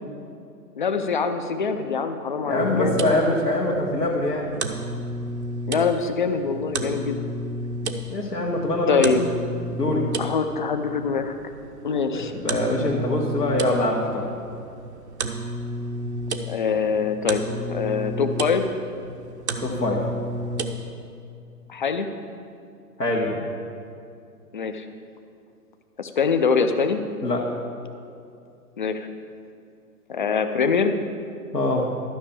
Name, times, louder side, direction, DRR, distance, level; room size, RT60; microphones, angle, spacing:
voice 1, 0.8-3.0 5.7-7.2 8.9-9.3 10.2-11.3 11.8-12.3 16.5-18.7 21.7-22.1 24.5-24.9 26.0-27.0 28.8-29.1 30.1-31.0, left 5 dB, 35° left, 8 dB, 0.5 m, -24 dB
voice 2, 2.5-4.6 8.1-9.0 9.7-10.1 12.1-14.3 19.6-20.1 23.0-23.4 27.2-27.6 31.5-31.9, left 1 dB, 80° left, -4 dB, 1.7 m, -24 dB
sound 1, 2.6-20.9, right 1 dB, 45° right, 0.8 m, -32 dB
12.5 x 5.9 x 7.0 m, 2.5 s
figure-of-eight pair, 135°, 47 cm